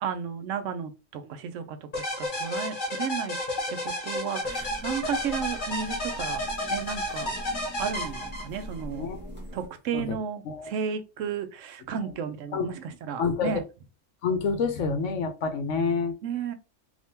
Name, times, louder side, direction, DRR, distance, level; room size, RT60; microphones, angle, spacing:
voice 1, 0.0-3.3 3.7-3.8 4.0-6.4 6.7-7.3 7.8-9.1 9.5-12.8 13.1-13.6 16.2-16.5, right 7 dB, 80° right, 0.9 m, -33 dB
sound 1, 1.9-8.8, left 1 dB, 45° left, 1.1 m, -31 dB
sound 2, 4.4-9.7, equal, 10° right, 1.2 m, -42 dB
voice 2, 9.0-9.3 9.9-10.2 10.4-10.7 12.5-12.7 13.2-13.6 14.2-16.1, left 5 dB, 75° left, 1.0 m, -28 dB
3.5 x 2.8 x 2.7 m
omnidirectional pair, 1.3 m